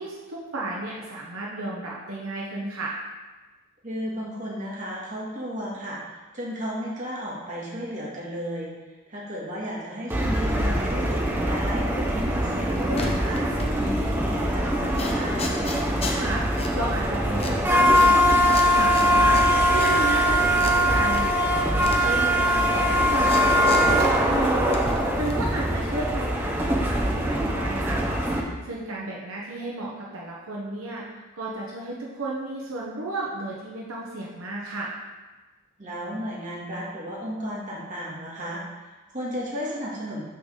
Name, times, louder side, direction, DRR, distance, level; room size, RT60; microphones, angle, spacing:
voice 1, 0.0-2.9 16.1-16.4 16.7-21.4 21.7-24.8 25.2-28.0 28.6-31.0 31.3-34.9, right 2 dB, 75° right, -4 dB, 1.1 m, -32 dB
voice 2, 3.8-8.7 9.1-15.5 25.8-25.9 35.8-40.2, equal, 35° right, -5 dB, 2.0 m, -34 dB
sound 1, 10.1-28.4, equal, 10° right, 0.7 m, -22 dB
sound 2, 12.2-14.2 14.6-25.7, left 2 dB, 30° left, 0.8 m, -37 dB
6.8 x 4.0 x 6.5 m, 1.2 s
head